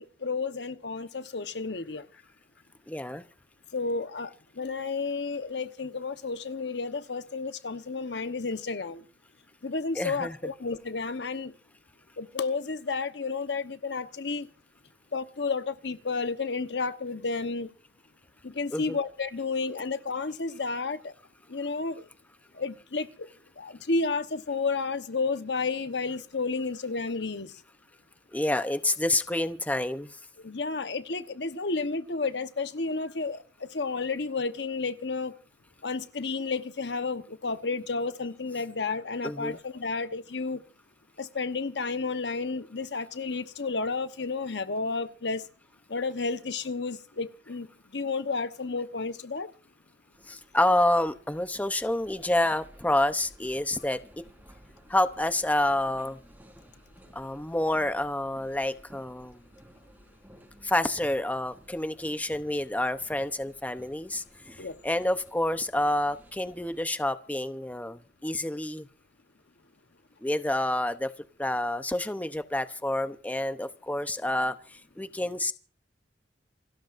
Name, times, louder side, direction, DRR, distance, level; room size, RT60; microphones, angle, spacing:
voice 1, 0.0-2.1 3.7-4.3 4.6-9.0 9.6-11.5 12.2-14.5 15.1-17.7 18.4-21.1 21.5-22.0 22.6-23.3 23.6-27.5 30.4-35.3 35.8-40.6 41.2-45.4 45.9-47.7 47.9-49.5 64.6-64.8, left 4 dB, 75° left, 1.1 m, -31 dB
voice 2, 2.9-3.2 9.9-10.5 18.7-19.0 28.3-30.2 39.2-39.6 50.3-54.0 54.9-56.2 57.1-59.4 60.6-64.2 64.5-68.9 70.2-71.1 71.4-75.5, left 1 dB, 10° left, 0.7 m, -28 dB
sound 1, 50.1-66.8, equal, 10° right, 4.3 m, -55 dB
28.0 x 13.0 x 2.6 m
head